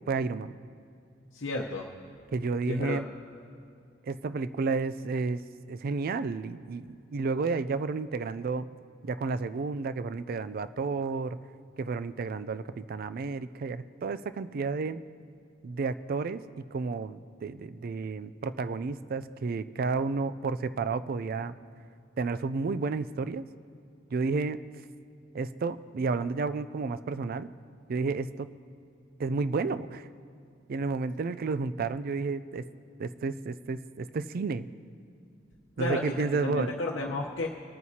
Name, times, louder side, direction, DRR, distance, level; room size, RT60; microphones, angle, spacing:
voice 1, 0.1-0.5 2.3-3.1 4.0-5.4 5.7-8.7 9.0-11.4 11.8-15.0 15.6-21.5 22.2-23.5 24.1-24.6 25.3-27.5 27.9-28.5 29.2-30.1 30.7-32.7 33.0-34.7 35.8-36.7, right 4 dB, 50° right, 14 dB, 0.4 m, -31 dB
voice 2, 1.3-1.9 2.7-3.0 35.8-36.1 36.4-37.5, left 2 dB, 80° left, -2 dB, 0.9 m, -32 dB
25.0 x 9.3 x 2.8 m, 2.5 s
head